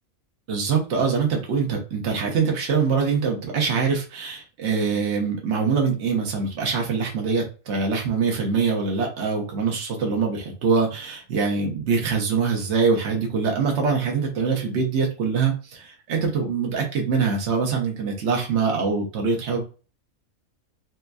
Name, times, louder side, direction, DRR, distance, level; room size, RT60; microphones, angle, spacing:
voice 1, 0.5-19.6, right 5 dB, 55° right, 1 dB, 1.2 m, -24 dB
4.3 x 2.5 x 2.3 m, 0.34 s
omnidirectional pair, 1.5 m